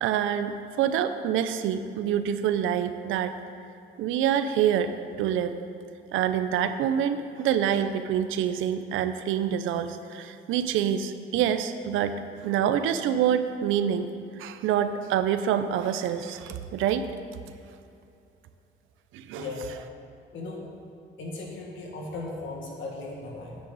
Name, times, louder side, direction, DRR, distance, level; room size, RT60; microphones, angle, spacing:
voice 1, 0.0-3.4 4.0-5.6 6.1-12.1 12.4-14.1 14.4-17.1 19.1-19.5, right 9 dB, 90° right, 10 dB, 0.6 m, -26 dB
voice 2, 19.4-19.8 20.3-20.6 21.2-23.6, left 3 dB, 75° left, 0 dB, 2.0 m, -37 dB
9.6 x 9.6 x 4.0 m, 2.6 s
cardioid pair, 90°, 20 cm